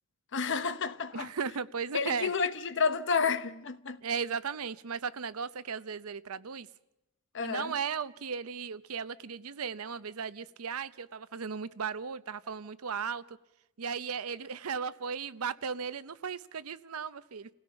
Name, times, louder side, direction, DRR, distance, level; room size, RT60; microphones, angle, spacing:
voice 1, 0.3-1.3 1.9-4.0 7.3-7.7, left 5 dB, 60° left, 1.1 m, -30 dB
voice 2, 1.1-2.3 4.0-6.7 7.4-13.4 13.8-17.5, right 6 dB, 85° right, 0.7 m, -36 dB
29.0 x 16.5 x 5.8 m
head